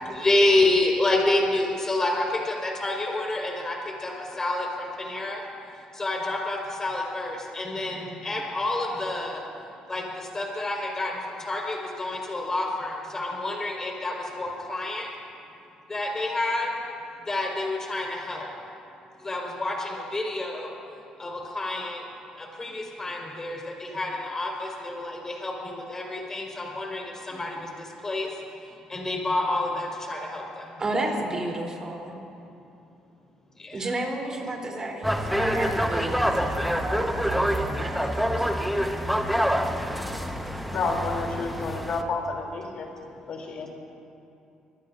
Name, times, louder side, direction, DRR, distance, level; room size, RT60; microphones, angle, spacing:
voice 1, 0.0-5.4 5.9-9.4 9.9-15.1 15.9-16.7 17.3-18.5 19.2-20.7 21.2-22.0 22.4-28.3 28.9-30.7 33.6-33.9, left 2 dB, 25° left, -1 dB, 4.9 m, -28 dB
voice 2, 30.8-32.2 33.7-38.5, right 2 dB, 30° right, -1 dB, 3.7 m, -32 dB
sound 1, 35.0-42.0, equal, ahead, 1.3 m, -26 dB
voice 3, 40.7-42.9 43.3-43.7, left 3 dB, 60° left, 0 dB, 3.3 m, -30 dB
25.5 x 20.0 x 2.7 m, 2.7 s
cardioid pair, 95°, 2 cm